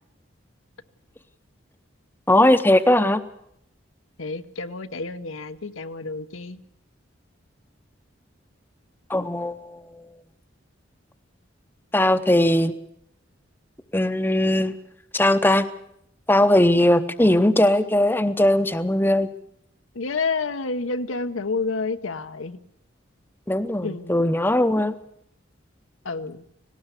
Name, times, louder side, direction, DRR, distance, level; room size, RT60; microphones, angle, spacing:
voice 1, 2.3-3.2 9.1-10.2 11.9-12.7 13.9-14.8 15.1-15.7 16.3-19.3 23.5-24.9, left 1 dB, 10° left, 11 dB, 0.7 m, -19 dB
voice 2, 4.2-6.6 19.9-22.6 23.8-24.3 26.0-26.4, left 4 dB, 85° left, 10 dB, 1.0 m, -29 dB
18.5 x 18.0 x 8.2 m, 0.75 s
head